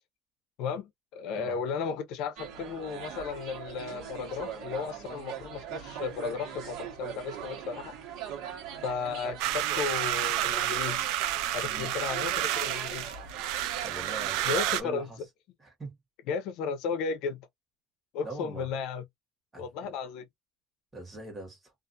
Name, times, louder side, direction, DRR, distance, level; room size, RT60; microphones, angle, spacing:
voice 1, 0.6-7.9 8.8-11.0 11.5-13.1 14.0-14.2 14.4-15.1 16.3-17.4 18.1-19.0 19.6-20.3, left 5 dB, 70° left, 0.6 m, -34 dB
sound 1, 2.4-14.4, right 8 dB, 70° right, 1.1 m, -41 dB
sound 2, 9.4-14.8, right 13 dB, 90° right, 0.4 m, -30 dB
voice 2, 13.8-15.2 15.6-16.0 18.2-18.7 19.5-19.9 20.9-21.7, right 1 dB, 15° right, 1.3 m, -42 dB
2.4 x 2.4 x 2.5 m
cardioid pair, 155°, 0 cm